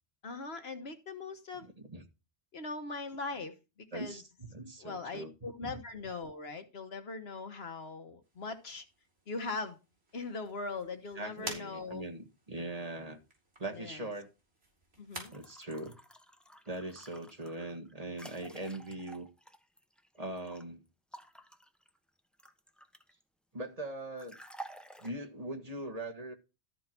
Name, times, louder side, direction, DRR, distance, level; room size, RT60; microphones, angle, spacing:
voice 1, 0.2-1.7 2.5-3.5 3.9-4.2 4.8-8.8 9.3-9.8 10.1-12.0 13.7-14.1 15.0-15.3, left 3 dB, 70° left, 1.5 m, -40 dB
voice 2, 1.6-2.0 3.9-5.3 5.6-5.8 11.1-13.2 13.6-14.3 15.3-16.0 16.7-19.3 20.2-20.8 23.5-24.3 25.0-26.3, right 1 dB, 35° right, 1.7 m, -41 dB
sound 1, 8.2-15.2, right 1 dB, 70° right, 4.2 m, -50 dB
sound 2, 15.1-20.6 21.1-23.2 24.2-25.1, right 1 dB, ahead, 0.8 m, -52 dB
13.5 x 4.7 x 5.9 m
omnidirectional pair, 1.1 m